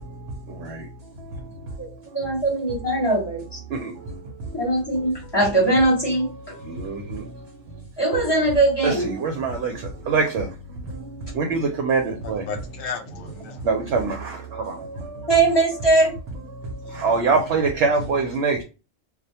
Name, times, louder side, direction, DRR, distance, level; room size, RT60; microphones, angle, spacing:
voice 1, 2.1-3.6 4.5-6.6 8.0-9.1 15.3-16.1, right 2 dB, 20° left, 0.8 m, -20 dB
voice 2, 6.7-7.2 8.8-9.7 10.1-10.4 11.3-12.4 13.6-14.4 14.7-14.8 17.0-18.6, right 4 dB, 65° right, 0.7 m, -23 dB
voice 3, 12.2-13.7 16.9-17.5, left 5 dB, 80° left, 1.1 m, -35 dB
2.2 x 2.1 x 2.7 m
omnidirectional pair, 1.3 m